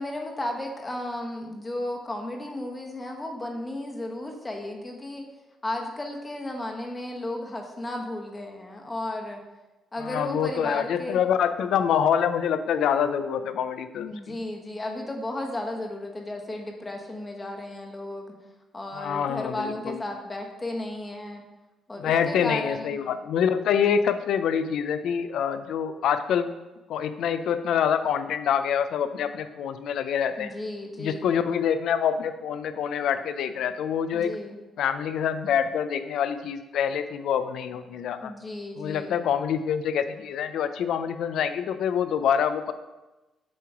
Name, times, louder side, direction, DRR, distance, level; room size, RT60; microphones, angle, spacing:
voice 1, 0.0-5.3 5.6-9.4 9.9-11.2 14.0-18.3 18.7-21.4 21.9-23.0 30.4-31.3 34.1-34.6 38.2-39.2, left 1 dB, 20° left, 2 dB, 1.0 m, -34 dB
voice 2, 10.0-14.4 18.9-20.0 22.0-26.5 26.9-30.5 31.0-34.4 34.8-38.3 38.8-42.7, left 8 dB, 75° left, 11 dB, 0.4 m, -26 dB
7.3 x 2.9 x 4.8 m, 1.1 s
cardioid pair, 90°, 0 cm